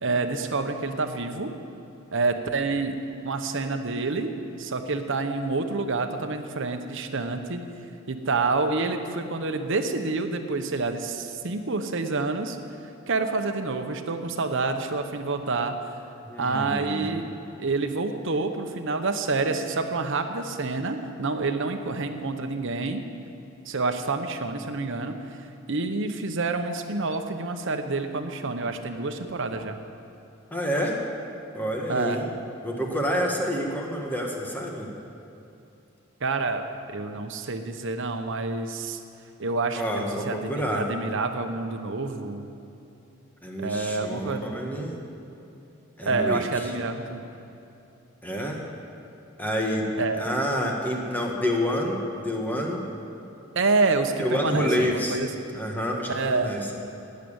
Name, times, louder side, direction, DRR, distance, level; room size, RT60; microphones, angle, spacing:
voice 1, 0.0-1.5 2.1-3.0 3.2-7.6 8.1-12.6 13.1-15.7 16.4-17.3 17.6-23.0 23.7-25.2 25.7-29.8 31.9-32.2 36.2-36.6 36.9-39.0 39.4-42.4 43.6-44.5 46.0-47.2 50.0-50.2 53.5-55.3 56.1-56.5, right 3 dB, 65° right, 6 dB, 1.0 m, -28 dB
voice 2, 16.3-17.1 30.5-31.0 31.5-32.3 32.6-34.9 39.7-40.9 43.4-45.0 46.0-46.7 48.2-48.6 49.4-49.9 50.2-52.9 54.2-55.2 55.5-56.6, equal, 10° left, -1 dB, 1.7 m, -28 dB
11.5 x 9.4 x 8.8 m, 2.8 s
head